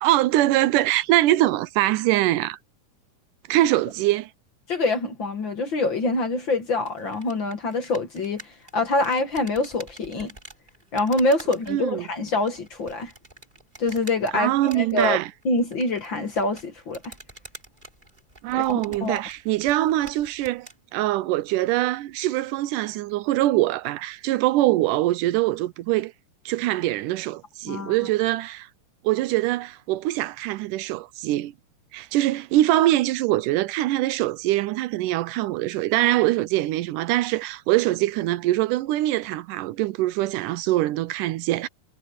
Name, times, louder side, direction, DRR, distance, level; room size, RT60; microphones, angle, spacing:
voice 1, 0.0-2.6 3.5-4.3 11.7-12.1 14.3-15.3 18.4-20.7 20.9-26.1 26.5-28.7 29.0-31.5 31.9-41.7, right 16 dB, 80° right, 2.2 m, -23 dB
voice 2, 4.7-10.3 10.9-13.1 13.8-15.2 15.4-17.1 18.5-19.2 27.7-27.9, left 2 dB, 45° left, 2.0 m, -25 dB
sound 1, 6.8-20.8, right 1 dB, 15° right, 4.2 m, -47 dB
omnidirectional pair, 3.7 m